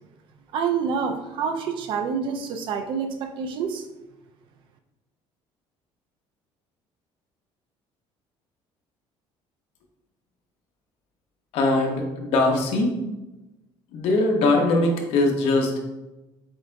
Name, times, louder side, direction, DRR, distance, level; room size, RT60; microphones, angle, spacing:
voice 1, 0.5-3.9, right 6 dB, 50° right, 6 dB, 0.4 m, -27 dB
voice 2, 11.5-13.0 13.9-15.8, left 2 dB, 65° left, 1 dB, 0.8 m, -21 dB
7.4 x 2.5 x 2.2 m, 1.0 s
cardioid pair, 165°, 11 cm